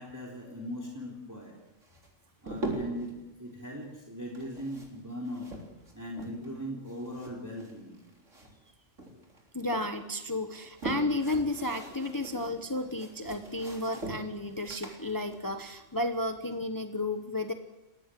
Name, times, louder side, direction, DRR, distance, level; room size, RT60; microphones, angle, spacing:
voice 1, 0.0-1.6 2.4-3.1 3.4-5.5 5.9-8.1 15.4-15.6, equal, 15° right, -2 dB, 3.5 m, -39 dB
sound 1, 1.8-3.1 4.2-6.6 6.9-8.7 9.0-9.9 10.4-16.5, right 2 dB, 75° right, 4.4 m, -41 dB
voice 2, 9.5-17.5, left 2 dB, 15° left, 6 dB, 1.1 m, -32 dB
29.5 x 17.5 x 7.7 m, 1.0 s
omnidirectional pair, 1.3 m